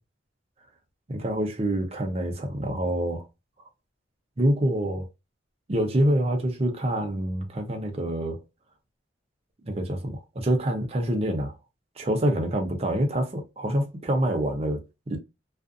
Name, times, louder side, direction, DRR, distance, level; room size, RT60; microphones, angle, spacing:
voice 1, 1.1-3.3 4.4-5.1 5.7-8.4 9.6-11.6 12.0-15.2, right 1 dB, 30° right, 0.5 m, -26 dB
2.4 x 2.4 x 2.4 m
head